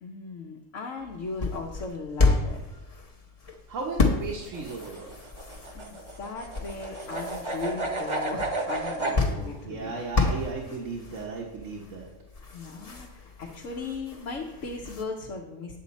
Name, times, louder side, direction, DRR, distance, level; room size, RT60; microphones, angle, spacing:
voice 1, 0.0-2.8 5.7-9.9 12.5-15.8, left 3 dB, 85° left, -2 dB, 1.2 m, -37 dB
sound 1, 1.0-15.0, left 3 dB, 35° left, 0.8 m, -31 dB
voice 2, 3.7-5.2 9.0-12.1, right 4 dB, 85° right, -1 dB, 1.4 m, -36 dB
sound 2, 4.4-9.2, right 2 dB, 30° right, 0.7 m, -32 dB
7.9 x 7.1 x 4.1 m, 1.0 s
omnidirectional pair, 1.3 m